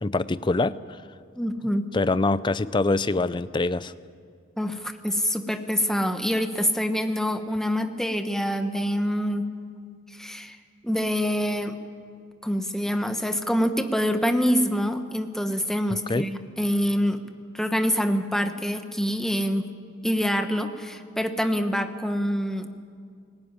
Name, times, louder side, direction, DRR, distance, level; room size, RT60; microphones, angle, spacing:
voice 1, 0.0-1.0 1.9-3.9 16.1-16.3, left 2 dB, 25° left, 16 dB, 0.4 m, -24 dB
voice 2, 1.3-1.8 4.6-9.4 10.1-10.6 10.8-11.7 12.4-17.2 17.5-19.6 20.0-22.7, equal, 5° left, 7 dB, 1.0 m, -25 dB
19.0 x 16.5 x 9.7 m, 2.2 s
head